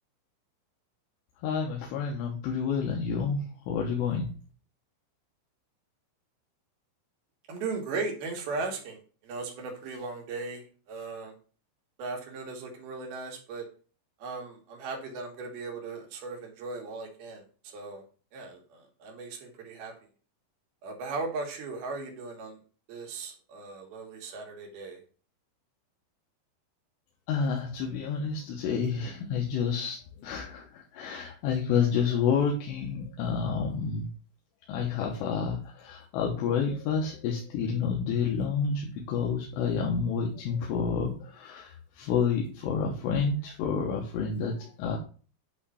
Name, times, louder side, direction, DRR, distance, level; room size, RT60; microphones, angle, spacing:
voice 1, 1.4-4.3 27.3-34.1 34.7-45.0, left 6 dB, 75° left, 0 dB, 2.8 m, -29 dB
voice 2, 7.5-11.3 12.0-13.7 14.2-18.0 18.3-19.9 20.8-22.6 22.9-25.0, right 3 dB, 65° right, 1 dB, 2.8 m, -37 dB
8.6 x 3.2 x 5.5 m, 0.39 s
omnidirectional pair, 5.6 m